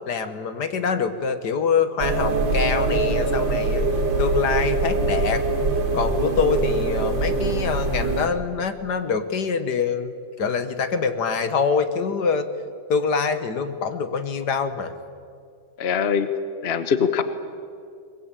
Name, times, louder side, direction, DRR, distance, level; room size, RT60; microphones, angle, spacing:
voice 1, 0.1-3.9 4.2-5.4 5.9-12.5 12.9-14.9, left 5 dB, 60° left, 10 dB, 1.8 m, -25 dB
sound 1, 2.0-8.3, right 3 dB, 75° right, 3.2 m, -23 dB
voice 2, 15.8-16.3 16.6-17.2, left 7 dB, 40° left, 10 dB, 1.1 m, -22 dB
23.0 x 21.0 x 9.0 m, 2.3 s
omnidirectional pair, 2.1 m